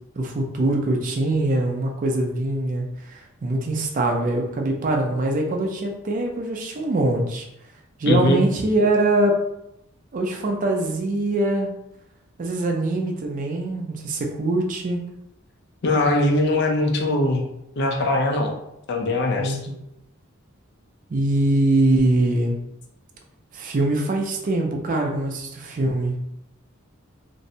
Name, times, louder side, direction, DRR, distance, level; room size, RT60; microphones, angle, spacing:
voice 1, 0.2-7.5 8.0-9.4 10.1-11.7 12.4-15.0 19.4-19.8 21.1-22.6 23.5-26.2, right 2 dB, 40° right, 2 dB, 0.4 m, -23 dB
voice 2, 8.1-8.4 15.8-17.5 17.8-18.5 18.9-19.6, left 2 dB, 55° left, 2 dB, 0.4 m, -21 dB
2.5 x 2.1 x 2.6 m, 0.81 s
head